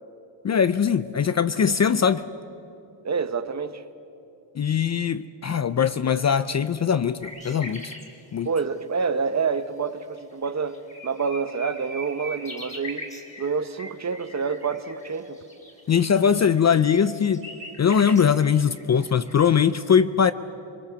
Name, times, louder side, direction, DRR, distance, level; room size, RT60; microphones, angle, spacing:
voice 1, 0.4-2.2 4.6-7.9 8.3-8.5 15.9-17.5 17.8-20.3, left 7 dB, 35° left, 0.5 m, -21 dB
voice 2, 3.0-3.8 8.4-10.8 11.0-13.1 13.4-15.4, right 5 dB, 35° right, 1.1 m, -27 dB
sound 1, 7.2-8.1 9.5-9.6 10.2-10.3 10.5-19.3, equal, 15° left, 3.1 m, -41 dB
26.0 x 21.5 x 7.0 m
cardioid pair, 115°, 47 cm